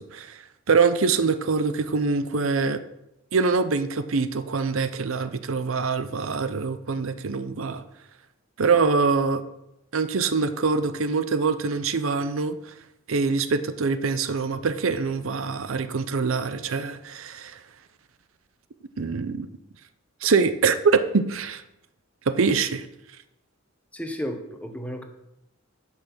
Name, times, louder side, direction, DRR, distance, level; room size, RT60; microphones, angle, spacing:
voice 1, 0.0-2.8 3.3-7.8 8.6-9.4 9.9-12.7 13.1-17.6 19.0-19.5 20.2-21.6 22.3-22.9, right 4 dB, 70° right, 11 dB, 0.6 m, -24 dB
voice 2, 23.9-25.0, equal, 5° left, 5 dB, 1.0 m, -33 dB
10.5 x 5.5 x 6.1 m, 0.87 s
head